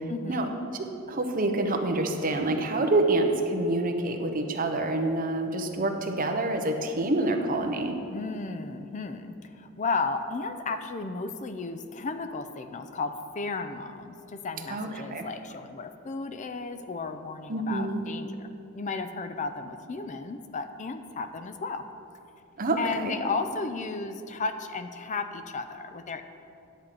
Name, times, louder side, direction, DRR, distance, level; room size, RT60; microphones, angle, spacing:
voice 1, 0.1-0.5 8.1-21.8 22.8-26.2, left 4 dB, 35° left, 9 dB, 0.4 m, -34 dB
voice 2, 1.1-8.0 14.7-15.3 17.5-18.0 22.6-22.8 23.0-23.1, right 2 dB, 40° right, 4 dB, 0.8 m, -27 dB
10.5 x 4.4 x 7.6 m, 2.8 s
head